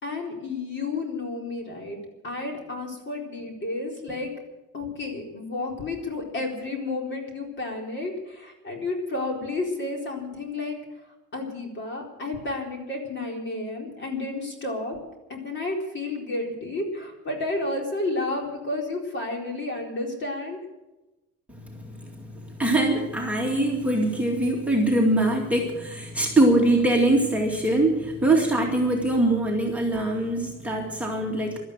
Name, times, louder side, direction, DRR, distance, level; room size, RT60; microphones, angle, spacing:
voice 1, 0.0-2.0 2.2-4.3 4.7-10.8 11.3-15.0 15.3-20.6, left 2 dB, 40° left, 1 dB, 4.2 m, -31 dB
voice 2, 21.5-31.6, right 1 dB, 5° right, -2 dB, 2.3 m, -23 dB
17.0 x 12.5 x 6.5 m, 1.0 s
cardioid pair, 155°, 30 cm